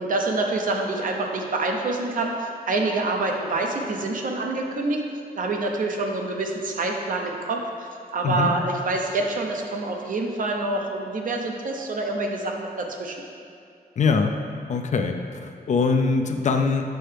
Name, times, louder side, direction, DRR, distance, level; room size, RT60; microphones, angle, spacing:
voice 1, 0.0-5.0 5.3-13.2, right 2 dB, 55° right, 1 dB, 0.7 m, -26 dB
voice 2, 14.0-14.3 14.7-16.9, left 4 dB, 45° left, 5 dB, 0.4 m, -22 dB
7.7 x 5.5 x 3.3 m, 2.4 s
wide cardioid pair, 165°, 16 cm